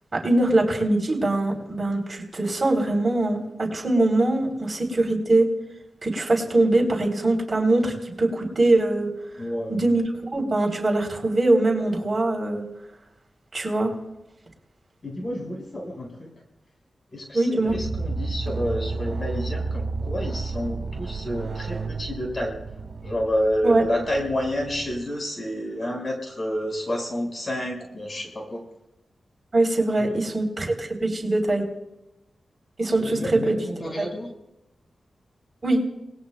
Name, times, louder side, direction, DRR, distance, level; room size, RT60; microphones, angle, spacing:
voice 1, 0.1-5.5 6.0-9.1 9.7-10.0 10.3-12.6 13.5-13.9 17.3-17.7 23.6-23.8 29.5-31.7 32.8-33.6 34.0-34.1 35.6-35.8, right 2 dB, 40° right, 1 dB, 3.7 m, -22 dB
voice 2, 9.4-9.9 15.0-16.3 17.1-22.5 23.0-28.6 30.0-30.2 33.0-34.3, equal, 40° left, 2 dB, 5.3 m, -29 dB
sound 1, 17.7-25.0, right 3 dB, 70° right, 2.1 m, -32 dB
29.5 x 20.0 x 2.3 m, 0.91 s
cardioid pair, 60°, 0 cm